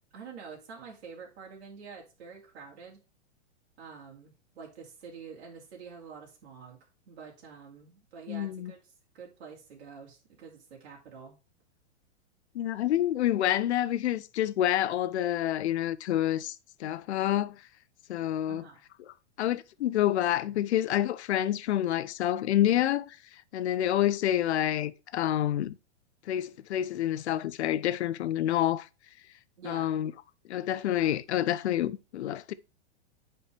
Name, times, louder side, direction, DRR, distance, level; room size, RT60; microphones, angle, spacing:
voice 1, 0.1-3.0 3.8-11.4 18.5-18.8 29.6-29.9, right 5 dB, 65° right, 2.6 m, -47 dB
voice 2, 8.3-8.7 12.5-17.5 18.1-18.6 19.4-23.2 23.5-25.7 26.3-28.9 29.6-30.1 30.5-32.5, left 12 dB, 75° left, 0.7 m, -28 dB
9.4 x 4.4 x 3.4 m
hypercardioid pair, 150°, 34 cm